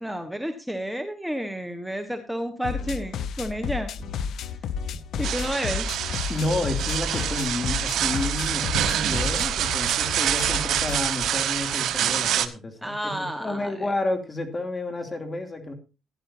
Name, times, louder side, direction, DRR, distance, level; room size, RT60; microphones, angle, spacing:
voice 1, 0.0-3.9 5.2-5.9 12.8-13.9, equal, 5° right, 6 dB, 1.4 m, -31 dB
sound 1, 2.6-11.0, left 7 dB, 70° left, 0.7 m, -32 dB
sound 2, 4.0-4.4 4.7-5.5 5.8-6.2 6.5-7.4 7.7-8.1 8.4-9.3 9.6-10.0 10.3-11.4, left 1 dB, 55° left, 1.9 m, -39 dB
sound 3, 5.2-12.5, right 11 dB, 75° right, 1.0 m, -26 dB
voice 2, 6.3-15.7, left 2 dB, 25° left, 6 dB, 2.8 m, -30 dB
15.5 x 11.0 x 2.8 m, 0.30 s
cardioid pair, 90°, 0 cm